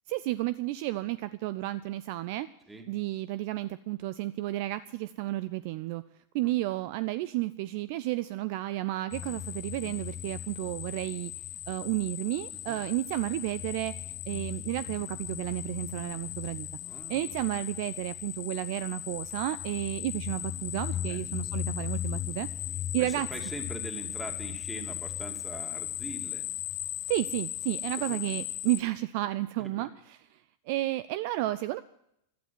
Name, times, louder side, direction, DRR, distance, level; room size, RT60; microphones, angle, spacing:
voice 1, 0.1-2.5 2.9-6.0 6.3-11.3 11.7-13.9 14.3-16.7 17.1-22.5 22.9-23.3 27.1-29.9 30.7-31.8, right 17 dB, 45° right, 16 dB, 0.5 m, -32 dB
sound 1, 9.1-28.8, left 11 dB, 30° left, 0.6 m, -37 dB
voice 2, 16.7-17.4 21.1-21.2 23.0-26.4 28.0-28.2 29.6-29.9, right 2 dB, 10° right, 4 dB, 2.8 m, -43 dB
17.0 x 12.5 x 6.1 m, 0.77 s
figure-of-eight pair, 90°, 0 cm